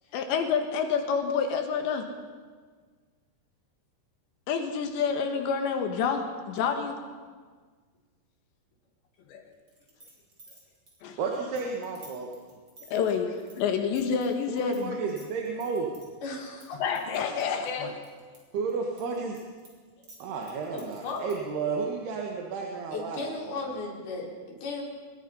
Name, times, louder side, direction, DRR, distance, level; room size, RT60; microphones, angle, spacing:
voice 1, 0.1-2.1 4.5-7.0 9.3-9.4 11.0-11.2 12.9-13.3 13.6-15.0 16.8-18.0, left 6 dB, 85° left, 5 dB, 3.9 m, -28 dB
sound 1, 9.7-14.8 15.1-16.1 16.6-18.4 18.7-21.5, right 2 dB, 30° right, 5.9 m, -53 dB
voice 2, 11.2-12.3 14.5-15.9 17.8-17.9 18.5-19.4 20.2-23.2 23.5-23.6, right 4 dB, 70° right, 0 dB, 3.7 m, -32 dB
voice 3, 16.2-16.8 20.0-20.1 20.7-21.3 22.9-24.8, left 3 dB, 65° left, -1 dB, 5.7 m, -36 dB
25.5 x 21.5 x 5.7 m, 1.5 s
omnidirectional pair, 4.9 m